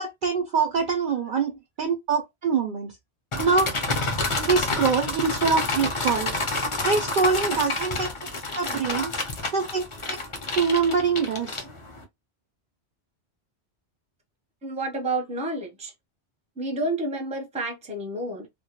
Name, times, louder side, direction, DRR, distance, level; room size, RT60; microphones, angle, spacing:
voice 1, 0.0-2.9 3.4-3.7 4.4-6.3 6.8-8.3 8.6-9.1 9.5-10.2 10.6-11.6, right 5 dB, 60° right, 0.6 m, -24 dB
sound 1, 3.3-12.0, left 2 dB, 40° left, 0.5 m, -29 dB
voice 2, 14.6-15.9 16.6-18.5, right 2 dB, 10° right, 0.5 m, -30 dB
2.2 x 2.1 x 2.8 m
omnidirectional pair, 1.1 m